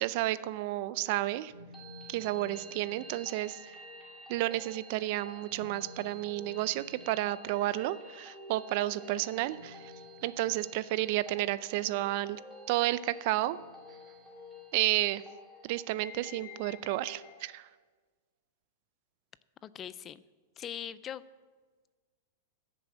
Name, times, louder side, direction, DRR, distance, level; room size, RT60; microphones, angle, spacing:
voice 1, 0.0-1.5 2.1-3.6 4.3-9.8 10.2-12.4 12.7-13.6 14.7-15.2 15.6-17.7, right 16 dB, 45° right, 16 dB, 0.4 m, -31 dB
sound 1, 1.5-17.5, left 1 dB, 5° right, 2.4 m, -50 dB
voice 2, 19.6-20.2 20.6-21.2, left 9 dB, 20° left, 17 dB, 0.3 m, -41 dB
14.0 x 7.0 x 7.1 m, 1.4 s
supercardioid pair, 165°, 0 cm